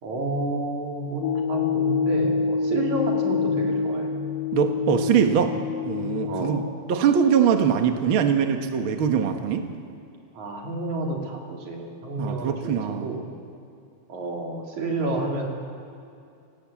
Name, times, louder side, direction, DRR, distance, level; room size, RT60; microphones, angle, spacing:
voice 1, 0.0-4.1 6.3-6.7 10.3-13.3 14.1-15.5, right 2 dB, 50° right, 0 dB, 4.3 m, -30 dB
sound 1, 1.2-6.7, left 5 dB, 75° left, 2.8 m, -26 dB
voice 2, 4.5-5.5 5.8-9.6 12.2-13.1, right 7 dB, 65° right, 5 dB, 1.3 m, -22 dB
29.5 x 19.0 x 8.7 m, 2.5 s
omnidirectional pair, 4.5 m